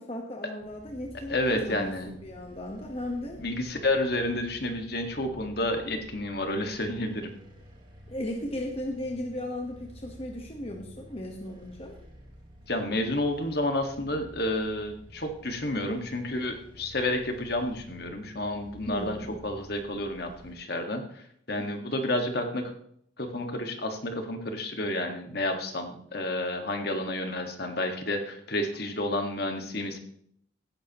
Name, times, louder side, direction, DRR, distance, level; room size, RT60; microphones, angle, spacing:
voice 1, 0.0-3.4 8.1-12.0 18.9-19.4 21.6-21.7, left 1 dB, 30° left, 1 dB, 1.2 m, -36 dB
sound 1, 0.6-20.5, equal, 25° right, 2.3 m, -50 dB
voice 2, 1.3-2.2 3.4-7.3 12.7-19.2 19.4-22.7 23.2-30.0, left 1 dB, 55° left, 5 dB, 1.8 m, -30 dB
16.5 x 10.0 x 3.0 m, 0.67 s
head